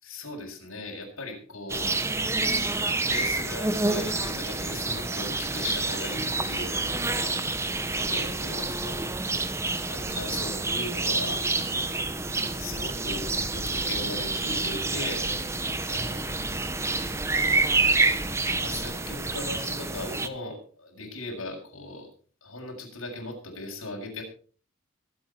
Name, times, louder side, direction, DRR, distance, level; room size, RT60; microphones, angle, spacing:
voice 1, 0.0-1.9 3.0-7.5 8.0-9.0 9.9-11.5 12.6-15.4 15.8-16.3 18.6-22.1 22.4-24.2, left 2 dB, 85° left, -1 dB, 7.0 m, -38 dB
sound 1, 1.7-20.3, right 3 dB, 15° right, 0.9 m, -28 dB
25.0 x 8.5 x 4.4 m, 0.42 s
head